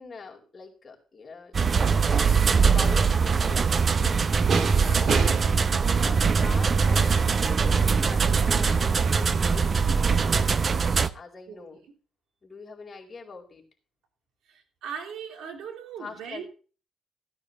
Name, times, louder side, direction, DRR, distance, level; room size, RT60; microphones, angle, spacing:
voice 1, 0.0-1.5 1.9-2.2 2.6-4.2 4.8-5.4 6.0-10.7 11.1-11.8 12.4-13.6 16.0-16.5, left 4 dB, 35° left, 0 dB, 4.3 m, -43 dB
sound 1, 1.5-11.1, right 5 dB, 40° right, 0.7 m, -22 dB
sound 2, 3.1-11.0, right 5 dB, 55° right, 2.0 m, -37 dB
voice 2, 4.7-5.0 11.5-11.6 14.8-16.5, right 7 dB, 80° right, 5 dB, 3.0 m, -38 dB
15.0 x 9.6 x 3.9 m, 0.38 s
cardioid pair, 90°, 0 cm